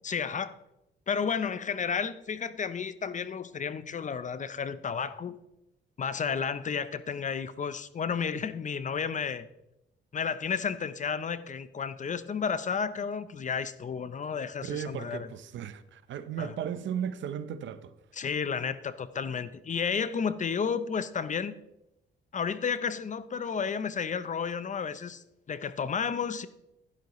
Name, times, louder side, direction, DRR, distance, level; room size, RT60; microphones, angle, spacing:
voice 1, 0.0-0.6 1.1-5.4 6.0-9.5 10.1-15.3 16.4-16.5 18.1-21.5 22.3-26.5, left 6 dB, 40° left, 0.7 m, -32 dB
voice 2, 14.6-17.9, right 8 dB, 70° right, 0.8 m, -35 dB
11.5 x 10.5 x 3.1 m
cardioid pair, 90°, 20 cm